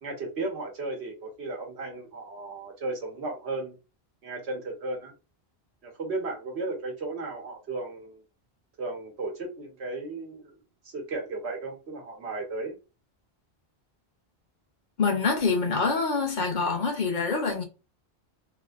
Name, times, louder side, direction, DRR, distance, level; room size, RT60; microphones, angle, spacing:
voice 1, 0.0-3.7 4.2-5.1 5.8-8.2 8.8-10.6 10.8-12.8, right 2 dB, 90° right, 1.4 m, -35 dB
voice 2, 15.0-17.6, left 4 dB, 50° left, 0.8 m, -25 dB
3.3 x 2.5 x 2.4 m
omnidirectional pair, 1.1 m